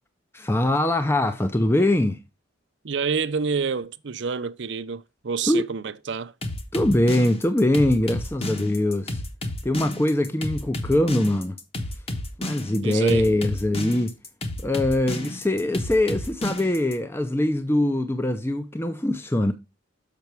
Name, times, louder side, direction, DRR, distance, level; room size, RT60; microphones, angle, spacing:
voice 1, 0.3-2.2 5.5-5.6 6.7-9.2 9.6-11.6 12.4-14.1 14.6-19.5, left 1 dB, 10° left, 0.5 m, -22 dB
voice 2, 2.8-6.3 12.8-13.3, right 5 dB, 65° right, 0.6 m, -28 dB
sound 1, 6.4-16.9, left 1 dB, 30° left, 1.1 m, -31 dB
6.8 x 5.8 x 4.5 m
head